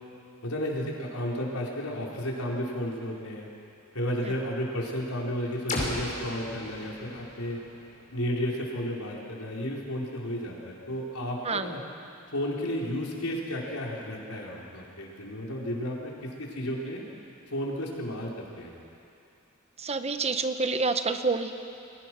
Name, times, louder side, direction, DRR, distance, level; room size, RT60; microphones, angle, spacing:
voice 1, 0.4-3.5 3.9-7.6 8.1-11.8 12.3-17.0 17.5-18.8, equal, 85° left, -2 dB, 4.4 m, -33 dB
sound 1, 5.7-9.5, left 1 dB, 40° left, 5.3 m, -37 dB
voice 2, 19.8-21.5, right 4 dB, 30° right, 8 dB, 1.0 m, -28 dB
30.0 x 22.0 x 6.2 m, 2.7 s
head